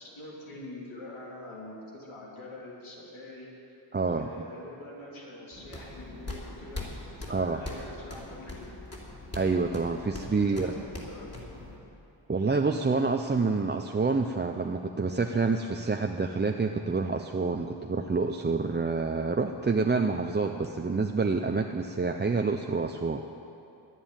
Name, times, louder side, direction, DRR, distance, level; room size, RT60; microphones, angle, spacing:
voice 1, 0.0-3.5 4.2-8.7 10.4-11.5, left 1 dB, 80° left, -4 dB, 3.5 m, -44 dB
voice 2, 3.9-4.3 7.3-7.6 9.3-10.7 12.3-23.2, right 4 dB, 20° right, 4 dB, 0.5 m, -27 dB
sound 1, 5.5-11.8, left 2 dB, 30° left, 3.0 m, -41 dB
11.0 x 10.0 x 9.1 m, 2.8 s
wide cardioid pair, 75°, 47 cm